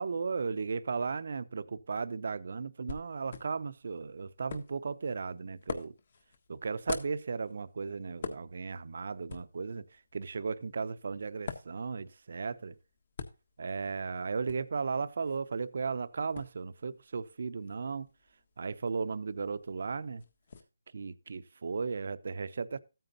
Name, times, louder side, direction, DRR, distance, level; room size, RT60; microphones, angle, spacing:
voice 1, 0.0-5.9 6.5-9.8 10.1-12.7 13.6-18.1 18.6-20.2 20.9-22.8, right 5 dB, 55° right, 0.7 m, -35 dB
sound 1, 2.9-20.6, left 5 dB, 40° left, 1.5 m, -47 dB
14.0 x 9.1 x 2.7 m
hypercardioid pair, 170°, 0 cm